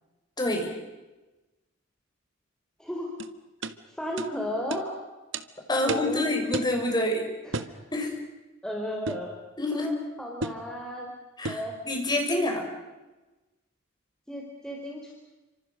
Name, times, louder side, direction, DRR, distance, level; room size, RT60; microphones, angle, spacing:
voice 1, 0.4-0.7 5.7-7.3 7.9-8.2 9.6-9.9 11.4-11.6 11.8-12.7, left 1 dB, 20° left, 3 dB, 6.4 m, -27 dB
sound 1, 3.2-3.3 3.6-3.8 4.2-4.3 4.7-4.9 5.3-5.5 5.9-6.1 6.5-6.8 7.5-7.8 9.1-9.3 10.4-10.7 11.4-11.7, right 2 dB, 70° right, 1.6 m, -32 dB
voice 2, 3.9-4.9 5.8-6.3 7.4-7.7 8.6-9.3 9.7-11.1 11.4-11.8 14.3-15.1, equal, 5° left, -1 dB, 4.2 m, -34 dB
29.5 x 26.5 x 6.6 m, 1.1 s
head